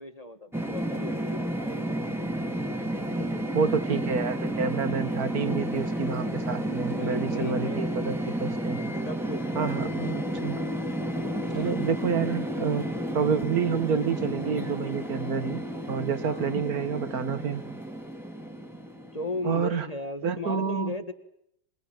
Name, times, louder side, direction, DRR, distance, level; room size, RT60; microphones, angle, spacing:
voice 1, 0.0-2.1 3.1-3.6 6.6-7.9 9.0-10.2 16.2-16.6 19.1-21.1, left 2 dB, 20° left, 9 dB, 1.5 m, -37 dB
sound 1, 0.5-19.7, right 1 dB, ahead, 2.2 m, -32 dB
voice 2, 3.5-8.8 9.6-10.6 11.5-12.9 13.1-15.6 15.9-17.6 19.4-19.9 20.2-21.0, right 6 dB, 50° right, 12 dB, 1.8 m, -28 dB
27.0 x 21.0 x 9.2 m, 0.74 s
omnidirectional pair, 2.3 m